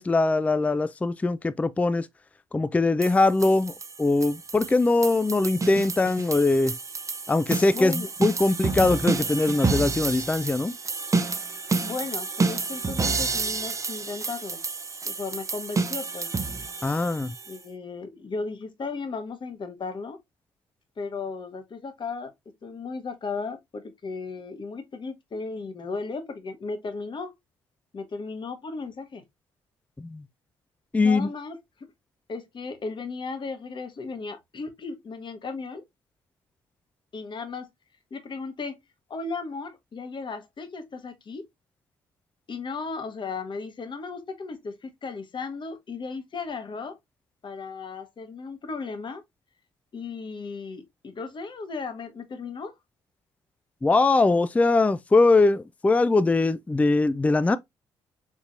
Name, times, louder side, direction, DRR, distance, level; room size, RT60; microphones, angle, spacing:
voice 1, 0.0-2.1 2.5-3.7 4.0-6.7 7.3-10.7 16.8-17.3 30.0-30.2 30.9-31.3 53.8-57.6, left 3 dB, 10° left, 0.3 m, -22 dB
sound 1, 3.0-17.6, right 4 dB, 25° right, 0.7 m, -29 dB
voice 2, 7.7-8.1 11.8-14.6 15.0-16.4 17.5-20.2 21.0-22.3 22.6-27.3 27.9-29.2 31.0-31.6 32.3-35.8 37.1-37.7 38.1-38.8 39.1-41.5 42.5-47.0 47.4-49.2 49.9-52.7, left 4 dB, 40° left, 1.0 m, -35 dB
4.5 x 2.7 x 2.5 m
supercardioid pair, 60°, 12 cm